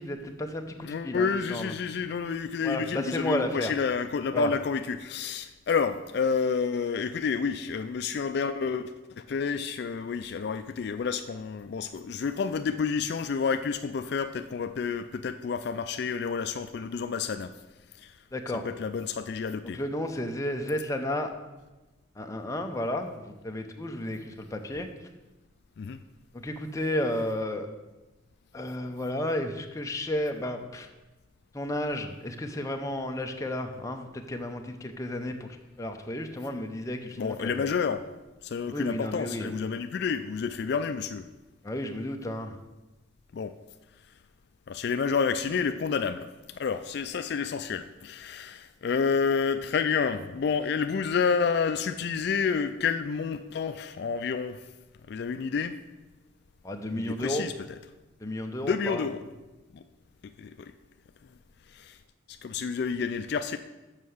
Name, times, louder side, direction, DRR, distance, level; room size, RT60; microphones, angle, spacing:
voice 1, 0.0-1.7 2.6-3.7 4.3-4.5 18.3-18.7 19.7-21.3 22.2-24.9 26.3-27.7 28.5-30.9 31.5-35.5 35.8-37.7 38.7-39.5 41.6-42.6 56.6-57.5 58.2-59.1, left 1 dB, 15° left, 4 dB, 0.6 m, -32 dB
voice 2, 0.8-17.5 18.0-18.2 18.6-19.8 25.8-26.0 37.2-38.0 38.4-41.2 43.3-43.5 44.7-46.3 46.6-54.7 55.1-55.8 56.9-57.8 58.6-59.2 59.7-59.8 60.4-60.7 61.7-62.0 62.3-63.6, left 5 dB, 55° left, 10 dB, 0.3 m, -29 dB
7.4 x 5.6 x 6.3 m, 1.1 s
head